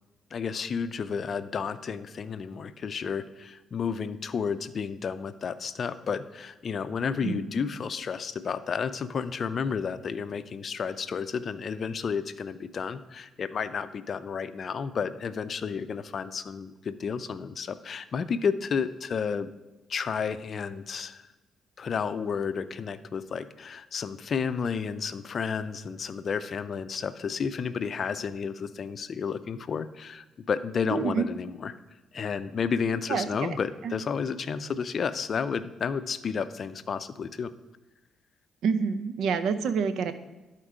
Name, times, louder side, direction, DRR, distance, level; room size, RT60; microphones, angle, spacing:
voice 1, 0.3-19.5 19.9-21.3 21.8-31.7 32.1-37.5, left 6 dB, 50° left, 13 dB, 0.5 m, -31 dB
voice 2, 30.9-31.3 33.1-33.6 33.8-33.9 38.6-40.1, right 6 dB, 75° right, 11 dB, 0.6 m, -27 dB
11.5 x 4.5 x 4.9 m, 1.1 s
cardioid pair, 90°, 0 cm